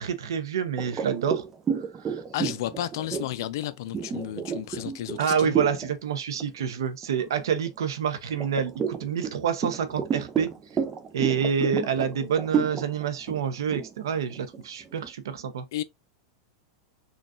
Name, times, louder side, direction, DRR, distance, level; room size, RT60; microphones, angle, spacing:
voice 1, 0.0-1.4 2.0-2.2 5.2-10.5 11.1-15.6, right 7 dB, 90° right, 0.7 m, -28 dB
sound 1, 0.8-5.9 6.3-6.6 7.0-7.8 8.4-15.1, right 6 dB, 20° right, 0.5 m, -31 dB
voice 2, 2.3-5.6 15.7-15.8, left 13 dB, 65° left, 0.4 m, -32 dB
3.9 x 2.3 x 2.3 m
supercardioid pair, 145°, 2 cm